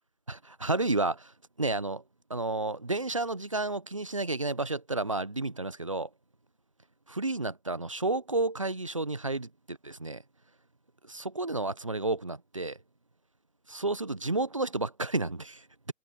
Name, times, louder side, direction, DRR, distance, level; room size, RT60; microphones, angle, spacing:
voice 1, 0.3-1.3 1.6-2.0 2.3-6.1 7.1-10.2 11.1-12.8 13.7-15.9, right 2 dB, 20° right, 1.0 m, -31 dB
figure-of-eight pair, 155°, 47 cm